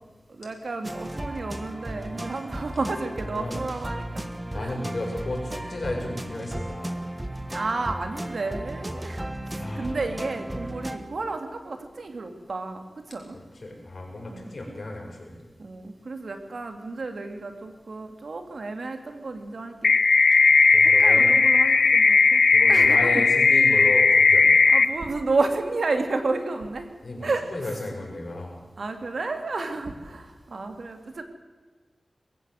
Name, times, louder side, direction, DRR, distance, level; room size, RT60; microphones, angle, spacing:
voice 1, 0.3-4.3 4.5-4.8 7.5-13.4 14.3-14.5 15.6-19.9 20.8-23.1 24.7-26.9 27.2-27.8 28.8-31.2, right 3 dB, 70° right, 6 dB, 2.2 m, -31 dB
sound 1, 0.8-11.0, right 1 dB, 15° right, 1.4 m, -35 dB
voice 2, 4.5-7.0 9.5-10.0 13.5-15.3 20.7-21.3 22.5-24.5 27.0-28.6, left 2 dB, 55° left, -1 dB, 6.8 m, -33 dB
sound 2, 19.8-24.9, left 4 dB, 80° left, 0.8 m, -17 dB
22.5 x 15.0 x 7.9 m, 1.3 s
wide cardioid pair, 80°, 0 cm